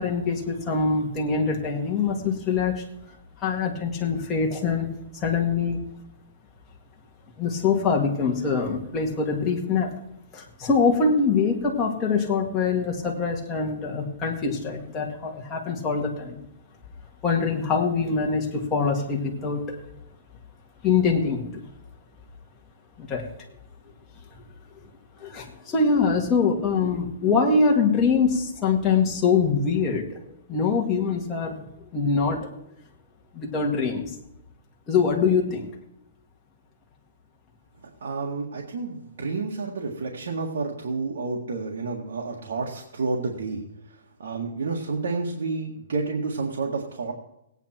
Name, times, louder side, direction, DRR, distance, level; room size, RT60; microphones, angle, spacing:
voice 1, 0.0-2.8 3.4-4.9 5.2-5.8 7.4-9.9 10.3-16.4 17.2-19.8 20.8-21.6 23.0-23.3 25.2-30.2 30.5-31.6 31.9-32.5 33.3-34.1 34.9-35.7, left 5 dB, 15° left, -1 dB, 2.0 m, -24 dB
voice 2, 38.0-43.6 44.2-47.1, right 4 dB, 80° right, -1 dB, 1.9 m, -30 dB
17.5 x 9.1 x 4.5 m, 0.84 s
hypercardioid pair, 165°, 0 cm